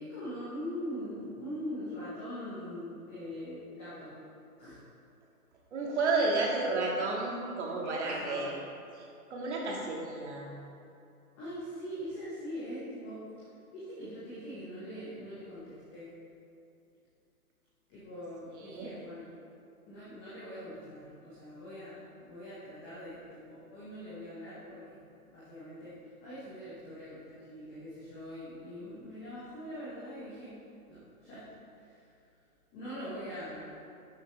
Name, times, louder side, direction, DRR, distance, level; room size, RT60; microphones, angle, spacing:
voice 1, 0.0-4.1 4.6-4.8 7.8-8.5 11.4-13.2 13.7-16.1 17.9-19.3 19.9-25.9 26.2-30.5 30.9-31.4 31.9-32.0 32.7-33.7, equal, 10° left, -11 dB, 0.8 m, -42 dB
voice 2, 5.7-8.5 9.0-10.5 18.6-18.9, right 3 dB, 45° right, -2 dB, 2.0 m, -32 dB
12.5 x 6.3 x 3.3 m, 2.6 s
hypercardioid pair, 155°, 46 cm